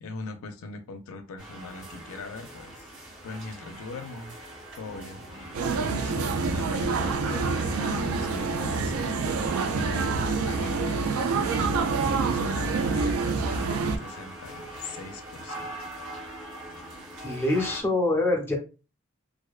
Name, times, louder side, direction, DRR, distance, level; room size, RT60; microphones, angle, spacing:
voice 1, 0.0-2.9 3.2-4.4 4.8-5.4 5.7-9.1 9.7-15.8, left 3 dB, 75° left, 0.4 m, -41 dB
sound 1, 1.4-17.8, right 1 dB, 60° right, 1.2 m, -42 dB
sound 2, 4.8-11.5, right 1 dB, 45° right, 0.7 m, -44 dB
sound 3, 5.5-14.0, right 4 dB, 80° right, 0.4 m, -27 dB
voice 2, 17.2-18.6, left 2 dB, 10° left, 0.5 m, -25 dB
2.5 x 2.1 x 2.3 m
head